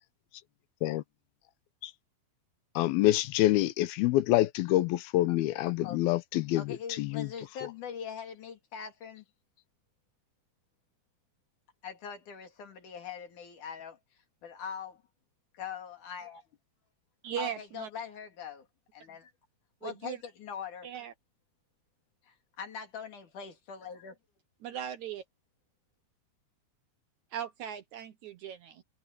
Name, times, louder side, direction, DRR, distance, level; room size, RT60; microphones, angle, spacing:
voice 1, 2.8-7.3 7.6-7.7, left 15 dB, 90° left, 2.7 m, -27 dB
voice 2, 6.5-9.2 11.8-14.0 14.4-15.0 15.5-16.4 17.4-18.7 18.9-19.3 19.8-20.9 22.3-24.2, left 7 dB, 60° left, 3.9 m, -42 dB
voice 3, 17.2-17.9 19.8-20.2 20.8-21.1 24.6-25.2 27.3-28.8, right 9 dB, 65° right, 2.1 m, -38 dB
omnidirectional pair, 4.2 m